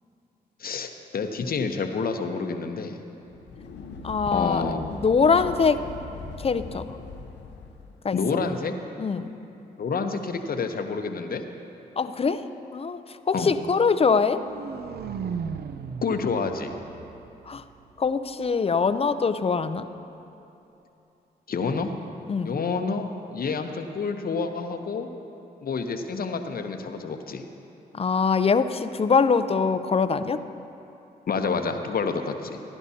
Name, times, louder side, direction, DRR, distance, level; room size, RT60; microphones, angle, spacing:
voice 1, 0.6-3.0 4.3-4.9 8.1-8.8 9.8-11.4 13.3-13.5 16.0-16.7 21.5-22.0 22.4-23.0 23.3-25.1 25.6-27.5 31.3-32.6, left 4 dB, 55° left, 6 dB, 0.8 m, -28 dB
sound 1, 3.2-8.0, left 4 dB, 80° left, 0.7 m, -40 dB
voice 2, 4.0-5.9 6.4-7.0 8.0-8.2 9.0-9.3 12.0-14.4 17.5-17.6 18.0-19.9 22.3-22.6 27.9-30.4, left 5 dB, 35° left, 11 dB, 0.5 m, -23 dB
sound 2, 14.1-18.1, right 6 dB, 65° right, 0.5 m, -36 dB
16.0 x 11.0 x 2.8 m, 2.9 s
supercardioid pair, 55°, 18 cm